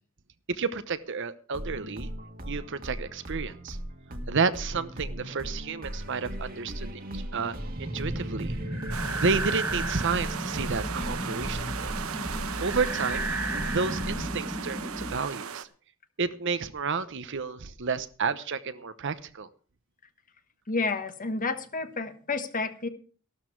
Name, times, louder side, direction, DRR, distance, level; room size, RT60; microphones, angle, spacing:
voice 1, 0.5-2.1 2.4-3.8 4.3-8.5 9.2-11.9 12.6-13.3 13.7-15.7 16.2-19.5, right 4 dB, 60° right, 13 dB, 0.9 m, -31 dB
sound 1, 1.5-14.3, equal, 45° right, 1.6 m, -38 dB
sound 2, 7.8-15.2, right 1 dB, 10° right, 1.2 m, -34 dB
sound 3, 8.9-15.7, right 7 dB, 85° right, 0.9 m, -37 dB
voice 2, 20.7-22.9, left 3 dB, 40° left, 9 dB, 1.3 m, -30 dB
14.0 x 12.5 x 4.6 m, 0.41 s
head